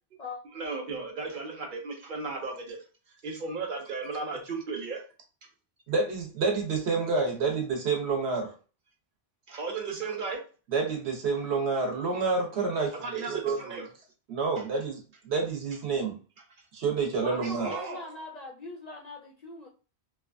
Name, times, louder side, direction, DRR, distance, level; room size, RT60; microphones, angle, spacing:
voice 1, 0.5-2.8 3.1-5.0 9.5-10.4 13.0-13.9 17.6-18.1, right 4 dB, 55° right, 0.8 m, -35 dB
voice 2, 5.9-8.5 10.7-13.6 14.3-16.2 16.7-17.7, right 4 dB, 75° right, 1.0 m, -28 dB
voice 3, 17.2-19.7, left 2 dB, 55° left, 0.4 m, -40 dB
2.8 x 2.3 x 2.4 m
omnidirectional pair, 1.1 m